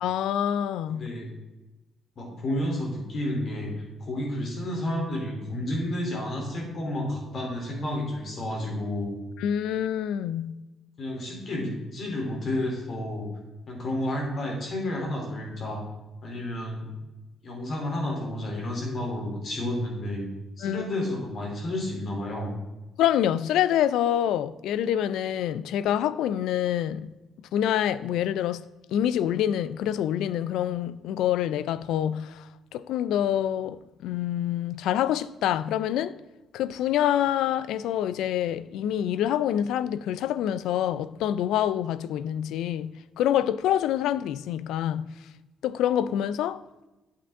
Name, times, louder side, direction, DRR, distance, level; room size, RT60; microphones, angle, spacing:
voice 1, 0.0-1.1 9.4-10.6 20.6-20.8 23.0-27.1 27.5-28.6 28.9-32.4 32.7-36.2 36.5-45.1 45.6-46.6, left 10 dB, 85° left, 0.3 m, -26 dB
voice 2, 0.9-1.3 2.2-9.1 11.0-13.3 13.7-15.8 16.2-16.9 17.4-20.3 20.6-22.5, left 1 dB, 55° left, 3.1 m, -31 dB
8.5 x 8.3 x 3.5 m
cardioid pair, 90°, 0 cm